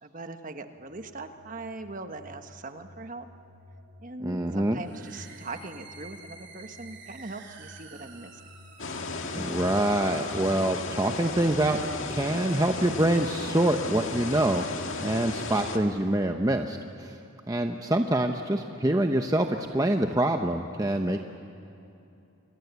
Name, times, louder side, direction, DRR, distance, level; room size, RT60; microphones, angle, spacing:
voice 1, 0.0-3.3 4.0-8.4, right 3 dB, 40° right, 7 dB, 1.3 m, -41 dB
sound 1, 0.8-16.8, left 1 dB, 85° right, 5.8 m, -53 dB
voice 2, 4.2-4.8 9.3-11.8 12.1-14.7 15.0-17.2 17.5-21.2, right 1 dB, 15° right, 4 dB, 0.8 m, -25 dB
sound 2, 4.8-11.4, right 4 dB, 55° right, 3.3 m, -50 dB
sound 3, 8.8-15.8, left 3 dB, 65° left, 2.0 m, -34 dB
29.0 x 24.0 x 8.2 m, 2.7 s
head